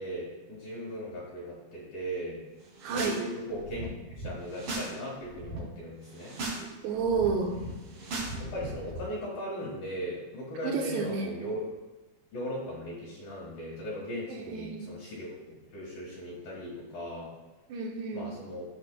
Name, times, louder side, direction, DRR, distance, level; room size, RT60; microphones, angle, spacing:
voice 1, 0.0-2.4 2.9-3.9 4.2-6.3 8.4-11.6 12.3-15.3 15.7-17.3 18.1-18.6, equal, 65° left, -5 dB, 3.1 m, -38 dB
sound 1, 2.7-3.2 3.5-4.9 5.2-5.6 6.1-6.6 6.9-9.0, right 2 dB, 55° right, 4.5 m, -38 dB
voice 2, 2.8-3.2 6.8-7.5 10.6-11.3 14.3-14.8 17.7-18.2, right 5 dB, 90° right, 1 dB, 3.2 m, -30 dB
16.5 x 6.2 x 2.2 m, 1.1 s
omnidirectional pair, 4.8 m